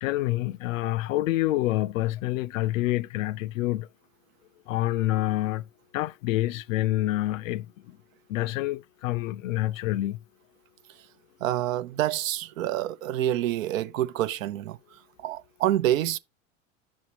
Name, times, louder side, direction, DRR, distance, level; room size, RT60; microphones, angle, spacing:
voice 1, 0.0-3.9 4.7-5.6 5.9-8.0 8.3-10.2, left 16 dB, 75° left, 0.5 m, -27 dB
voice 2, 11.4-16.2, right 13 dB, 75° right, 0.6 m, -28 dB
8.5 x 6.3 x 2.9 m
hypercardioid pair, 90°, 40 cm